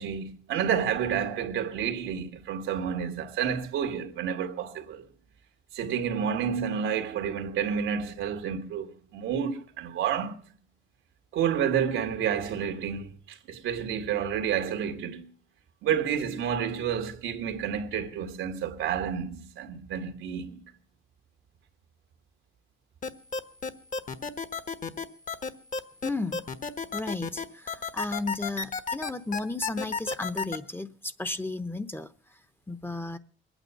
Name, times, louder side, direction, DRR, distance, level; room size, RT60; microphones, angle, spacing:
voice 1, 0.0-5.1 5.7-10.4 11.3-15.3 15.8-20.6, right 8 dB, 85° right, 1.8 m, -30 dB
sound 1, 23.0-30.6, left 5 dB, 40° left, 1.3 m, -32 dB
voice 2, 26.0-26.4 26.9-32.1 32.7-33.2, left 2 dB, 10° left, 0.9 m, -34 dB
21.0 x 9.1 x 6.8 m
cardioid pair, 90°, 20 cm